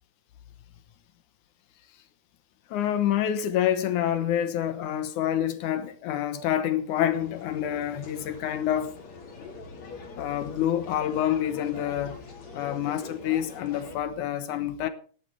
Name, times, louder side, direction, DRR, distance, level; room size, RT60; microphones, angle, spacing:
voice 1, 2.7-8.9 10.2-12.2 12.5-14.9, left 11 dB, 70° left, 2.1 m, -27 dB
sound 1, 6.8-14.0, left 4 dB, 50° left, 3.5 m, -43 dB
16.0 x 11.5 x 3.3 m
omnidirectional pair, 4.4 m